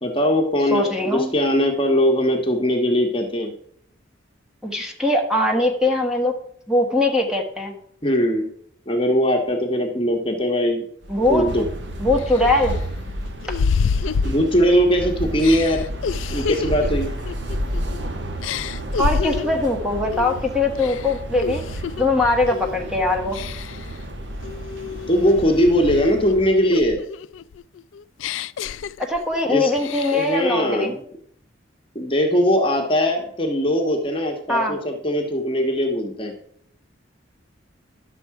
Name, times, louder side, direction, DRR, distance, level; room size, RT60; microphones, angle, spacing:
voice 1, 0.0-3.5 8.0-8.5 8.9-10.8 11.3-11.7 14.2-15.9 16.3-17.1 25.1-27.0 29.5-29.7 30.1-31.0 31.9-36.3, equal, 25° left, 2 dB, 1.3 m, -20 dB
voice 2, 0.7-1.3 4.6-6.3 6.7-7.8 11.1-11.6 12.0-12.7 19.0-21.6 22.0-23.4 29.0-30.9 34.5-34.8, left 2 dB, 5° right, 1 dB, 1.5 m, -21 dB
sound 1, 11.0-26.8, equal, 65° right, 1.3 m, -31 dB
sound 2, 11.5-11.6 12.2-14.9 15.4-18.0 18.4-19.7 20.1-20.4 20.8-22.1 22.5-22.8 23.3-23.9 24.4-26.3 26.7-29.4 29.8-30.4, left 5 dB, 80° left, 0.4 m, -28 dB
11.5 x 7.0 x 4.8 m, 0.65 s
head